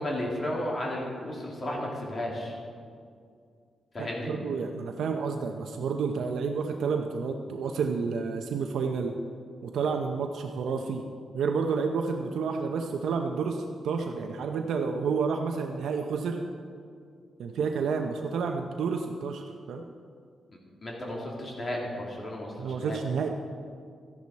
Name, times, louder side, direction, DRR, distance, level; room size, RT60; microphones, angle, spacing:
voice 1, 0.0-2.5 3.9-4.3 20.8-23.0, left 1 dB, 25° left, -2 dB, 2.3 m, -33 dB
voice 2, 4.0-9.2 9.6-11.1 11.3-16.5 17.4-19.8 22.6-23.3, right 5 dB, 80° right, 4 dB, 0.7 m, -30 dB
13.5 x 11.0 x 4.2 m, 2.2 s
wide cardioid pair, 175°, 0 cm